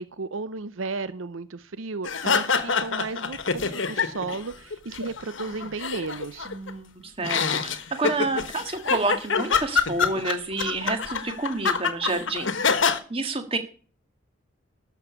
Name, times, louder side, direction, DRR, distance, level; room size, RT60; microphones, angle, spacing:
voice 1, 0.0-6.5, right 3 dB, 75° right, 14 dB, 0.7 m, -34 dB
sound 1, 2.0-4.4 4.7-6.7 7.2-13.0, left 5 dB, 65° left, 1.3 m, -26 dB
voice 2, 6.5-12.5 13.1-13.6, right 2 dB, 25° right, 7 dB, 1.8 m, -29 dB
13.0 x 7.0 x 6.9 m, 0.40 s
head